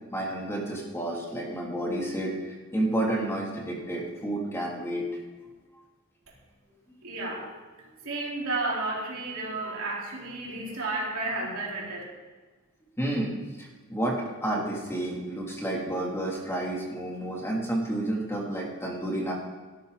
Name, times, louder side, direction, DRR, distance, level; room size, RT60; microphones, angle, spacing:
voice 1, 0.1-5.1 13.0-19.3, right 1 dB, 10° left, -2 dB, 3.0 m, -30 dB
voice 2, 7.0-7.5 8.0-12.0, right 2 dB, 75° right, -4 dB, 4.2 m, -32 dB
17.0 x 12.5 x 4.1 m, 1.3 s
head